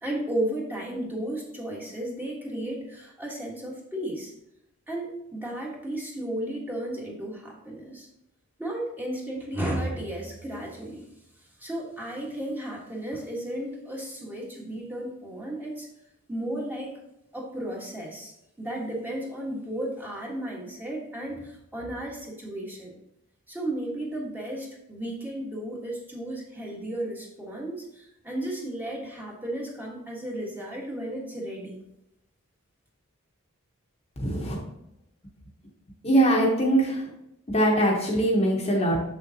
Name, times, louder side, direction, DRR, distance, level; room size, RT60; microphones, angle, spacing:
voice 1, 0.0-4.3 4.9-8.1 8.6-11.0 11.6-15.9 16.3-17.0 17.3-18.3 18.6-22.9 23.5-31.8, right 1 dB, 10° right, -3 dB, 1.5 m, -34 dB
voice 2, 34.2-34.6 36.0-37.0 37.5-39.0, right 1 dB, 30° left, -2 dB, 1.1 m, -22 dB
6.8 x 6.7 x 2.8 m, 0.83 s
head